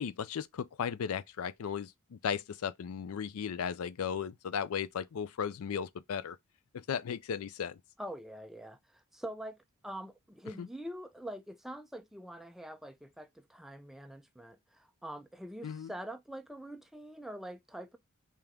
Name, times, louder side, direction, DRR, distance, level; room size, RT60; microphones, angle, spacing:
voice 1, 0.0-6.4 6.7-7.8 10.6-10.7 15.6-15.9, left 7 dB, 75° left, 0.4 m, -36 dB
voice 2, 8.0-9.6 9.8-18.0, right 1 dB, ahead, 0.3 m, -44 dB
3.4 x 2.9 x 3.5 m
head